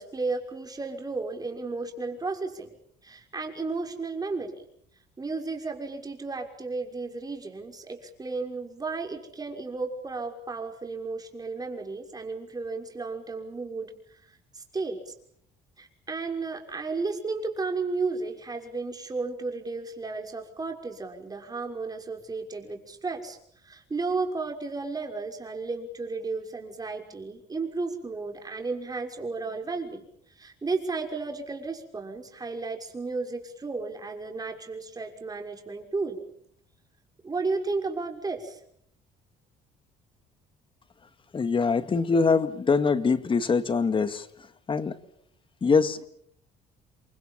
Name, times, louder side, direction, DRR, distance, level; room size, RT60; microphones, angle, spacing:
voice 1, 0.0-2.7 3.0-4.5 5.2-14.2 14.5-15.1 15.8-23.4 23.6-30.1 30.3-36.2 37.2-38.6, right 3 dB, 20° right, 6.2 m, -33 dB
voice 2, 41.3-45.0 45.6-46.0, left 4 dB, 30° left, 2.0 m, -24 dB
29.0 x 23.5 x 7.5 m
cardioid pair, 110°, 17 cm